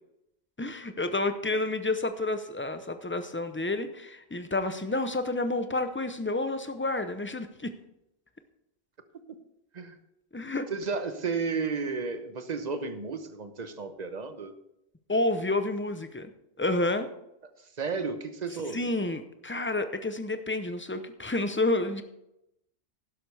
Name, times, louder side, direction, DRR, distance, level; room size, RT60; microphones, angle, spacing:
voice 1, 0.6-7.7 10.3-10.7 15.1-16.3 16.6-17.1 18.7-22.0, left 2 dB, 15° left, 9 dB, 0.6 m, -29 dB
voice 2, 10.7-14.5 17.8-18.9, right 4 dB, 45° right, 9 dB, 1.0 m, -33 dB
12.0 x 11.0 x 3.4 m, 0.85 s
omnidirectional pair, 1.0 m